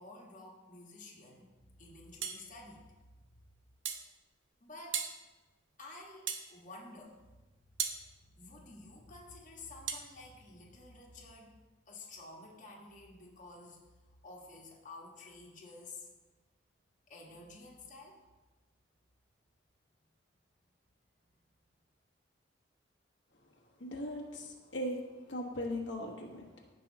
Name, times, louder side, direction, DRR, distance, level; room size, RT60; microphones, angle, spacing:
voice 1, 0.0-2.8 4.6-5.1 5.8-7.2 8.3-11.5 11.9-13.8 14.1-16.1 17.1-18.2, left 2 dB, 40° left, -2 dB, 1.4 m, -51 dB
sound 1, 2.2-2.4 3.8-4.1 4.9-5.2 6.3-6.5 7.8-8.0 9.9-10.1, right 7 dB, 90° right, 0.8 m, -36 dB
voice 2, 23.3-26.7, left 1 dB, 75° left, -1 dB, 1.2 m, -40 dB
16.0 x 5.4 x 2.8 m, 1.2 s
head